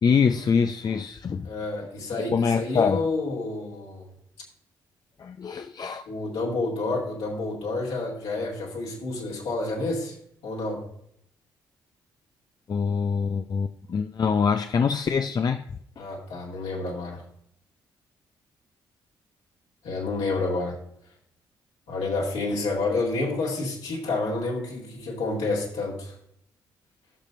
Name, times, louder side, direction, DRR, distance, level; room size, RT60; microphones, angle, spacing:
voice 1, 0.0-1.5 2.3-3.0 5.2-6.0 12.7-15.6 16.0-16.1, left 6 dB, 40° left, 0.5 m, -24 dB
voice 2, 1.4-4.1 6.1-10.2 10.4-10.9 16.0-17.2 19.8-20.8 21.9-26.1, left 3 dB, 70° left, 2.4 m, -29 dB
15.0 x 6.6 x 2.6 m
figure-of-eight pair, 40°, 11 cm